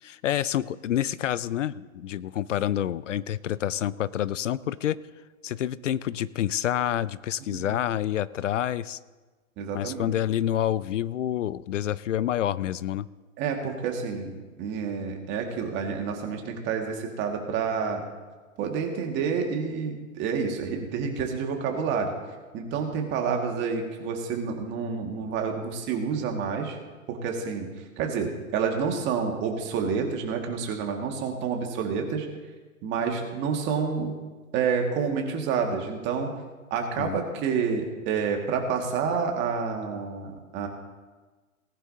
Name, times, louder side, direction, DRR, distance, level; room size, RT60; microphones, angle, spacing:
voice 1, 0.0-5.0 5.4-9.0 9.7-13.1 37.0-37.2, left 11 dB, 65° left, 18 dB, 0.5 m, -28 dB
voice 2, 9.6-10.1 13.4-18.0 18.6-22.1 22.5-26.8 27.1-27.7 28.0-32.3 32.8-34.2 34.5-36.3 36.7-40.7, right 6 dB, 25° right, 2 dB, 1.9 m, -29 dB
19.0 x 11.0 x 2.8 m, 1.3 s
hypercardioid pair, 125°, 41 cm